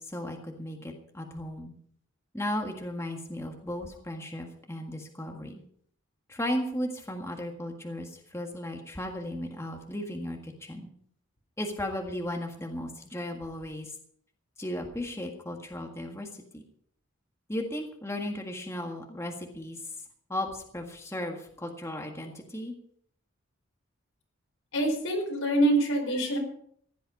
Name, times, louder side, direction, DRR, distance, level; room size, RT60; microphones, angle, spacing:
voice 1, 0.0-1.7 2.3-5.6 6.3-10.9 11.6-13.9 14.6-16.6 17.5-19.9 20.3-22.7, left 1 dB, 15° left, 2 dB, 1.7 m, -35 dB
voice 2, 24.7-26.4, right 1 dB, 85° left, 2 dB, 4.7 m, -25 dB
15.5 x 11.5 x 5.4 m, 0.63 s
head